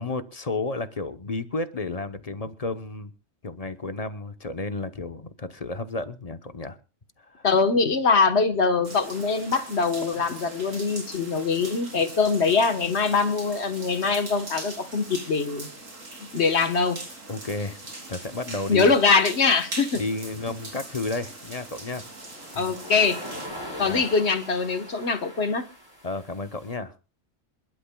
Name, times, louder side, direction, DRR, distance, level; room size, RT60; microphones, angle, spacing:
voice 1, 0.0-3.1 3.4-6.8 7.2-7.5 17.3-18.9 20.0-22.0 22.5-22.7 23.8-24.0 26.0-26.9, left 3 dB, 35° left, 0.9 m, -32 dB
voice 2, 7.4-15.7 16.3-17.0 18.7-20.0 22.5-23.2 23.8-25.7, left 4 dB, 60° left, 1.5 m, -23 dB
sound 1, 8.8-23.5, right 2 dB, 80° right, 3.6 m, -41 dB
sound 2, 20.2-20.6 21.7-26.7, equal, 20° right, 7.8 m, -41 dB
27.5 x 12.0 x 2.3 m
omnidirectional pair, 1.3 m